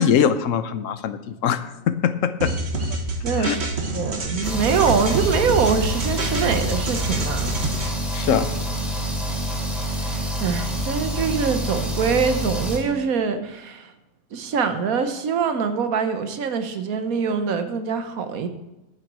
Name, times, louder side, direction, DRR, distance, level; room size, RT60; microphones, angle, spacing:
voice 1, 0.0-2.5 3.4-3.6 8.1-8.5, left 8 dB, 70° left, 12 dB, 1.0 m, -22 dB
sound 1, 2.4-7.9, right 2 dB, 50° right, 1.6 m, -27 dB
voice 2, 3.2-7.6 10.0-13.9 14.3-18.5, right 6 dB, 85° right, 9 dB, 1.4 m, -24 dB
sound 2, 4.4-12.8, equal, ahead, 2.6 m, -27 dB
11.0 x 6.0 x 7.4 m, 0.97 s
omnidirectional pair, 1.4 m